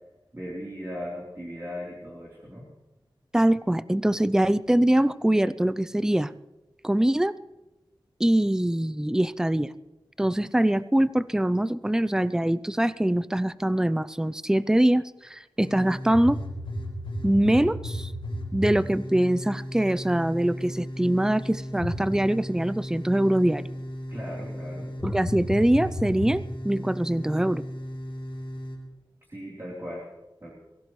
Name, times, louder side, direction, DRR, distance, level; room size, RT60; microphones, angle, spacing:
voice 1, 0.3-2.7 24.1-24.9 29.3-30.0 30.4-30.5, equal, 30° right, -6 dB, 3.6 m, -37 dB
voice 2, 3.3-6.3 6.8-7.4 8.2-9.7 10.2-15.0 15.3-16.4 17.2-18.1 18.5-23.7 25.0-27.6, right 1 dB, 5° right, 16 dB, 0.5 m, -23 dB
sound 1, 15.6-28.8, left 1 dB, 80° left, 5.0 m, -34 dB
22.5 x 16.0 x 3.2 m, 1.0 s
wide cardioid pair, 75°, 9 cm